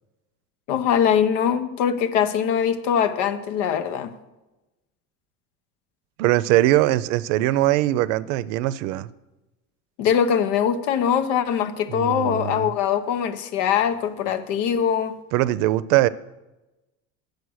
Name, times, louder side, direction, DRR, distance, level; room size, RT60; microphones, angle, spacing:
voice 1, 0.7-4.2 10.0-15.2, left 8 dB, 90° left, 1.0 m, -22 dB
voice 2, 6.2-9.1 11.9-12.7 15.3-16.1, right 16 dB, 85° right, 0.5 m, -21 dB
8.2 x 6.6 x 6.3 m
cardioid pair, 130°, 36 cm